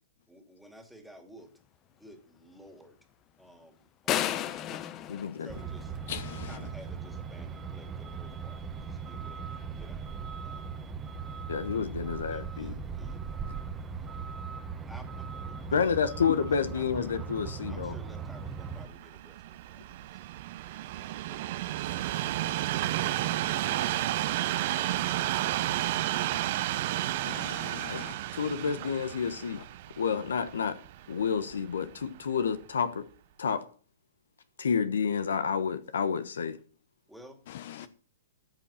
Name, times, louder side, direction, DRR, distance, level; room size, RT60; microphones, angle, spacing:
voice 1, 0.3-1.5 2.0-3.0 3.4-4.7 5.4-5.9 6.4-10.8 12.3-13.4 14.9-15.1 15.7-15.9 16.7-16.9 17.7-20.3 37.1-37.4 37.8-37.9, equal, ahead, 2.5 m, -53 dB
sound 1, 4.1-6.2, left 11 dB, 30° left, 0.9 m, -32 dB
voice 2, 5.1-5.5 11.5-12.7 15.7-17.9 27.9-28.0 28.3-29.6 30.0-30.8 31.1-33.0 33.4-33.6 34.6-36.6, left 6 dB, 75° left, 1.2 m, -29 dB
Truck, 5.5-18.9, right 5 dB, 20° right, 1.3 m, -39 dB
voice 3, 6.1-6.6 27.2-28.1 37.5-37.9, left 11 dB, 60° left, 0.6 m, -41 dB
Train, 18.5-31.7 32.4-32.6, right 14 dB, 50° right, 0.8 m, -32 dB
13.5 x 7.5 x 5.7 m
hypercardioid pair, 120°, 0 cm